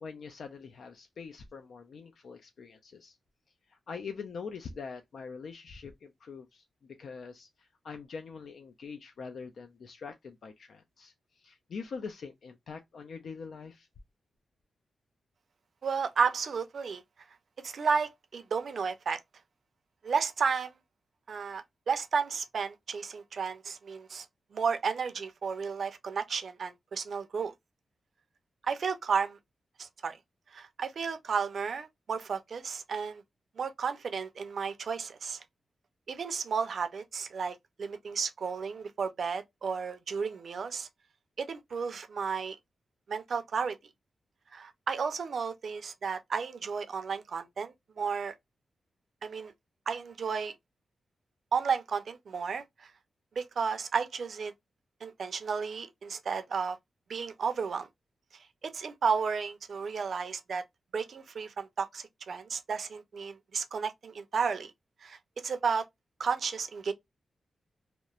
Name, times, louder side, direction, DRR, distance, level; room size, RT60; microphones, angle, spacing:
voice 1, 0.0-3.2 3.7-13.9, left 5 dB, 75° left, 0.4 m, -44 dB
voice 2, 15.8-17.0 17.6-19.2 20.0-20.7 21.3-24.3 24.5-27.5 28.6-29.4 29.8-30.2 30.5-33.2 33.6-35.4 36.1-40.9 41.4-42.6 43.1-43.8 44.5-48.3 49.2-49.5 49.9-50.6 51.5-52.9 53.4-54.5 55.0-56.8 57.1-57.9 58.6-60.6 60.9-64.7 65.0-65.9 66.2-66.9, right 5 dB, 65° right, 0.5 m, -33 dB
2.8 x 2.0 x 2.3 m
cardioid pair, 75°, 0 cm